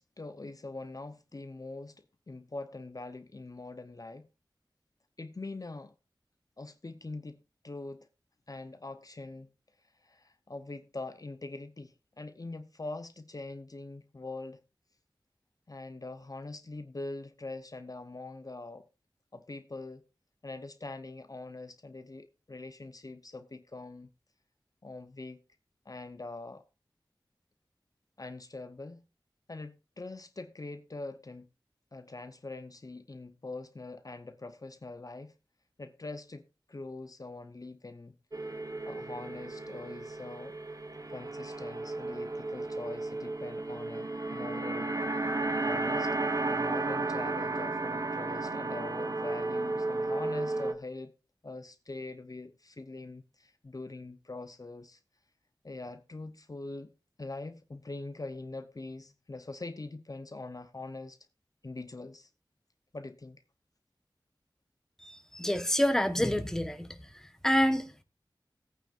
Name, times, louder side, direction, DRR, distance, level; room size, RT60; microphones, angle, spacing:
voice 1, 0.0-1.9 2.3-4.3 5.2-5.9 6.6-7.4 7.6-8.1 8.5-9.5 10.0-14.6 15.7-18.8 19.3-20.0 20.4-24.1 24.8-25.4 25.8-26.6 28.2-29.0 29.5-31.5 31.9-35.3 35.8-36.4 36.7-38.2 38.9-40.6 41.1-44.9 45.6-46.2 46.4-51.1 51.4-55.0 55.6-56.9 57.2-61.2 61.6-62.3 62.9-63.4, left 2 dB, 45° left, 0.8 m, -43 dB
sound 1, 38.3-50.7, right 2 dB, 45° right, 1.2 m, -33 dB
voice 2, 65.0-67.0 67.4-68.0, equal, 5° left, 1.2 m, -28 dB
17.0 x 9.1 x 2.5 m
wide cardioid pair, 55°, 8 cm